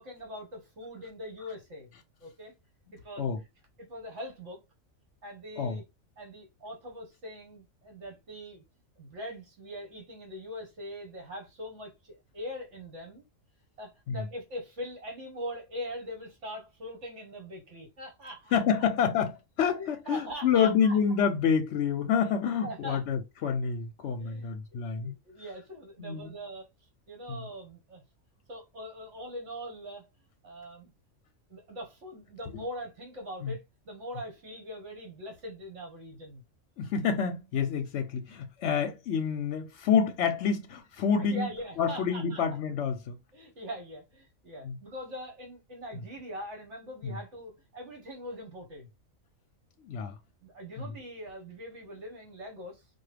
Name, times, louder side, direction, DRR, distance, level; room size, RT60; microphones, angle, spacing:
voice 1, 0.0-1.9 2.2-2.5 2.9-3.3 3.9-4.6 5.2-5.8 6.2-8.6 9.0-13.2 13.8-18.6 19.8-21.3 22.6-23.0 24.2-24.5 25.0-28.0 28.5-30.1 30.4-30.9 31.5-36.4 41.2-42.4 43.3-48.9 50.4-52.9, equal, 65° right, 1.4 m, -42 dB
voice 2, 18.5-25.2 26.0-26.3 27.3-27.4 33.4-33.5 36.8-41.5 41.8-43.2 44.6-44.8 47.0-47.1 49.8-50.2 50.8-50.9, left 7 dB, 65° left, 0.8 m, -28 dB
4.7 x 2.3 x 3.2 m
omnidirectional pair, 1.3 m